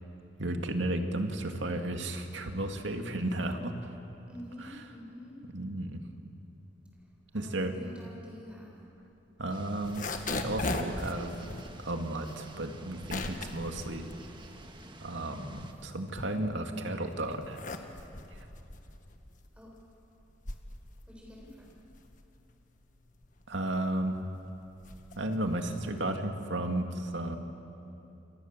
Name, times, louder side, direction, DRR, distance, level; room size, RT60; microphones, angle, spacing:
voice 1, 0.4-3.8 4.6-4.8 5.5-6.0 7.3-7.7 9.4-11.5 11.8-14.1 15.0-17.6 23.5-24.2 25.2-27.4, right 1 dB, 80° right, 5 dB, 2.3 m, -33 dB
voice 2, 4.3-5.4 7.3-8.7 19.6-19.7 21.1-21.7, left 1 dB, 5° right, -3 dB, 6.8 m, -47 dB
sound 1, 9.5-15.7, right 2 dB, 25° right, 1.6 m, -51 dB
sound 2, 9.7-15.0 15.4-16.8 17.3-26.0, left 2 dB, 45° left, 1.7 m, -40 dB
29.0 x 27.0 x 7.4 m, 2.8 s
head